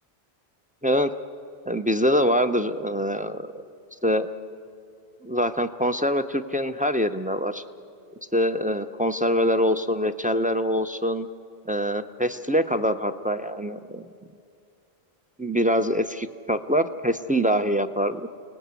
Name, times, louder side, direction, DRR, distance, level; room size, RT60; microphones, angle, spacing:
voice 1, 0.8-1.1 1.7-3.6 4.0-4.3 5.2-7.6 8.3-11.3 11.7-14.1 15.4-18.3, equal, 15° right, 7 dB, 0.3 m, -24 dB
29.0 x 19.0 x 8.2 m, 2.5 s
omnidirectional pair, 1.1 m